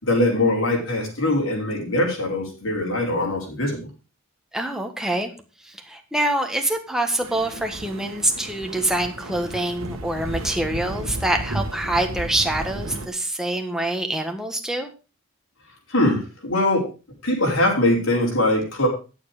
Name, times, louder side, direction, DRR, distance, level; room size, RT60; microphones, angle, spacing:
voice 1, 0.0-3.9 15.9-16.9 17.2-18.9, left 1 dB, 70° left, -1 dB, 4.8 m, -22 dB
voice 2, 4.5-5.3 5.6-14.9, right 1 dB, 5° right, 4 dB, 1.4 m, -25 dB
sound 1, 7.2-13.1, right 1 dB, 80° right, 1.5 m, -33 dB
11.5 x 7.3 x 4.9 m, 0.32 s
head